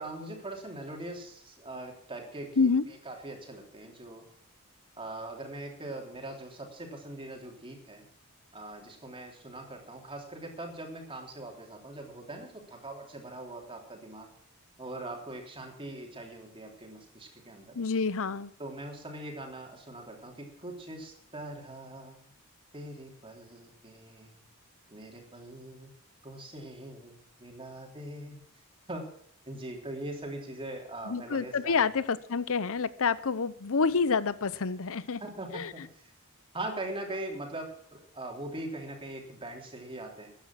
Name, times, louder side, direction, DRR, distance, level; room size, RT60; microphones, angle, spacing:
voice 1, 0.0-4.3 5.0-8.1 8.5-14.3 14.8-17.8 18.6-22.3 22.7-24.4 24.9-25.9 26.2-28.4 28.9-29.1 29.4-31.9 35.2-36.1 36.5-40.3, right 1 dB, 25° right, 2 dB, 3.3 m, -41 dB
voice 2, 17.7-18.5 31.0-35.2 35.5-35.7, left 5 dB, 65° left, 17 dB, 0.8 m, -28 dB
14.0 x 10.0 x 6.1 m, 0.62 s
head